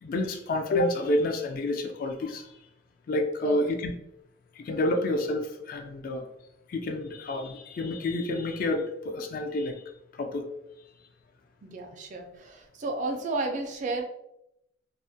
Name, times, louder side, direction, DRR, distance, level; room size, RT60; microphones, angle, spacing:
voice 1, 0.0-2.5 3.1-3.9 4.6-6.2 6.7-9.8 10.1-10.5, left 1 dB, 50° left, 4 dB, 0.3 m, -29 dB
voice 2, 3.4-3.8 11.6-14.0, right 2 dB, 45° right, 3 dB, 0.3 m, -33 dB
2.3 x 2.0 x 2.6 m, 0.81 s
head